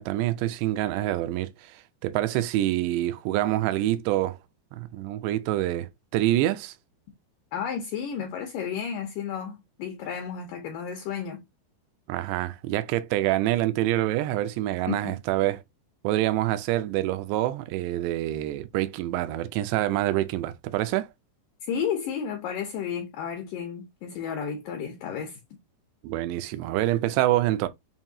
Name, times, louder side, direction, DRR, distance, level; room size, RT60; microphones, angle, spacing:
voice 1, 0.0-1.8 2.0-4.4 4.7-6.7 12.1-15.6 16.0-21.1 26.0-27.7, right 14 dB, 85° right, 2.7 m, -26 dB
voice 2, 7.5-11.4 14.9-15.2 21.7-25.4, left 7 dB, 85° left, 1.9 m, -32 dB
7.2 x 2.6 x 2.7 m
omnidirectional pair, 5.0 m